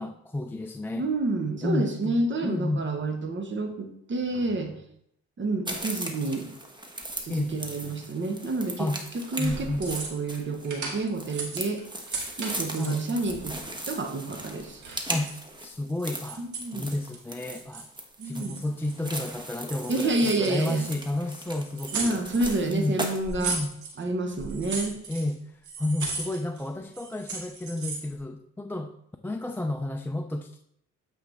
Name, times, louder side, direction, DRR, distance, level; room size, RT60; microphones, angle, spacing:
voice 1, 0.0-1.1 1.6-2.9 7.3-7.6 8.8-9.0 9.4-9.8 12.7-13.0 15.1-15.3 15.6-17.9 18.2-22.2 22.7-23.1 23.4-23.7 25.1-28.9 29.2-30.6, left 2 dB, 5° left, 5 dB, 0.4 m, -31 dB
voice 2, 1.0-4.8 5.4-6.5 7.2-8.9 9.3-11.8 12.4-14.8 16.4-16.9 18.2-18.6 19.9-20.9 21.9-23.6 24.0-25.0, right 2 dB, 40° right, 5 dB, 1.2 m, -29 dB
sound 1, 5.6-23.2, right 1 dB, 15° right, 1.2 m, -38 dB
sound 2, 9.4-10.4 10.6-13.5 14.1-15.4 15.9-17.2 17.5-18.0 18.2-19.3 19.7-21.2 21.5-22.6 23.0-24.0 24.3-25.3 25.6-26.7 26.9-28.1, right 4 dB, 70° right, 2.1 m, -37 dB
8.4 x 4.7 x 3.4 m, 0.70 s
cardioid pair, 90°, 30 cm